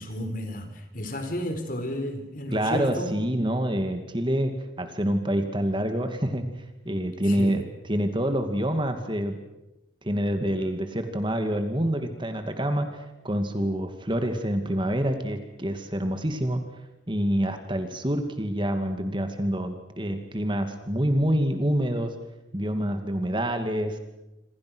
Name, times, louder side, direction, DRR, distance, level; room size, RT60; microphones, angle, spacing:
voice 1, 0.0-3.2 7.2-7.6, equal, 45° left, 8 dB, 4.0 m, -32 dB
voice 2, 2.5-6.5 6.9-7.6 7.9-9.4 10.0-16.6 17.1-22.1 22.5-24.0, equal, 25° right, 7 dB, 2.4 m, -27 dB
27.5 x 26.5 x 6.3 m, 0.94 s
head